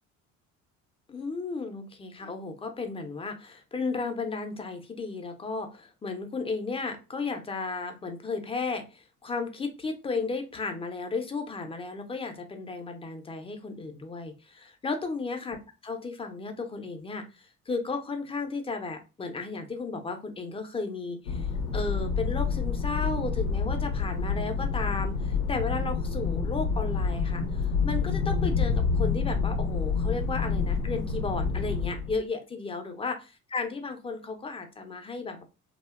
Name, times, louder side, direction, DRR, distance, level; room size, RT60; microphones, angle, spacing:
voice 1, 1.1-33.1 33.5-35.4, left 4 dB, 15° left, 6 dB, 0.4 m, -34 dB
sound 1, 21.3-32.2, left 5 dB, 85° left, 0.5 m, -28 dB
2.7 x 2.1 x 2.3 m, 0.29 s
figure-of-eight pair, 55°, 42 cm